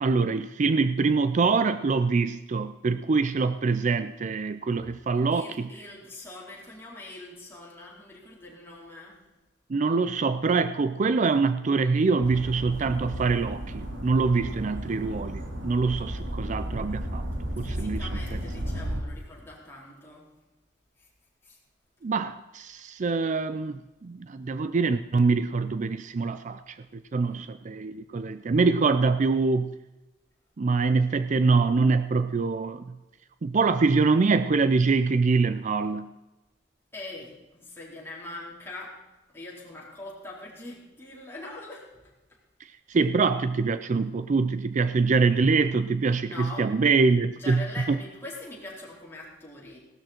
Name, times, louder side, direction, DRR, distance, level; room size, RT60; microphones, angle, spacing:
voice 1, 0.0-5.7 9.7-17.3 17.6-18.4 22.0-29.7 30.6-33.0 33.4-36.1 42.9-47.6 47.9-48.0, right 4 dB, 40° right, 12 dB, 0.4 m, -24 dB
voice 2, 5.3-9.3 14.3-14.5 17.6-20.3 21.0-21.1 21.4-21.6 27.2-27.5 36.9-39.0 39.3-42.0 42.9-43.0 46.2-46.7 47.4-49.8, left 2 dB, 15° left, -5 dB, 4.3 m, -42 dB
sound 1, 12.2-19.0, equal, 90° right, 2.5 m, -34 dB
17.5 x 12.5 x 4.4 m, 1.1 s
head